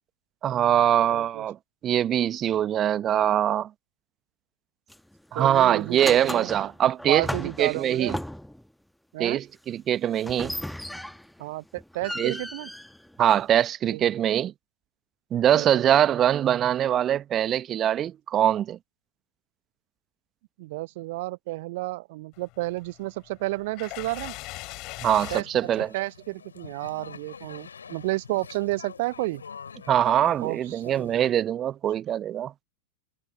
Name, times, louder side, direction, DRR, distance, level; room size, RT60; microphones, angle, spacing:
voice 1, 0.4-1.6 1.8-3.7 5.3-8.2 9.2-10.5 12.2-12.4 13.2-14.5 15.3-18.8 25.0-25.9 29.9-32.5, right 10 dB, 30° right, 1.0 m, -23 dB
voice 2, 1.1-1.4 5.3-6.5 7.1-8.2 9.1-9.4 11.4-12.7 13.9-14.0 15.5-15.7 20.6-24.3 25.3-29.4 30.4-31.1, right 20 dB, 50° right, 0.8 m, -31 dB
sound 1, 4.9-5.2 5.5-8.7 10.2-11.4 11.8-13.7, left 1 dB, ahead, 1.4 m, -36 dB
sound 2, 22.3-25.4, left 23 dB, 40° left, 4.6 m, -40 dB
sound 3, 25.2-31.3, left 6 dB, 70° left, 5.2 m, -46 dB
figure-of-eight pair, 90°, 0 cm